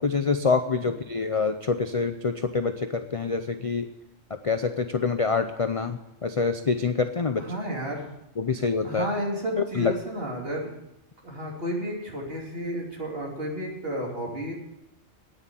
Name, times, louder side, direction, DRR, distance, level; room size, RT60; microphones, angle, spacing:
voice 1, 0.0-3.9 4.4-7.4 8.4-9.1 9.7-9.9, left 4 dB, 40° left, 8 dB, 0.5 m, -26 dB
voice 2, 7.4-8.1 8.8-10.7 11.2-14.5, equal, 50° right, -2 dB, 3.2 m, -32 dB
9.4 x 8.9 x 9.9 m, 0.91 s
omnidirectional pair, 1.3 m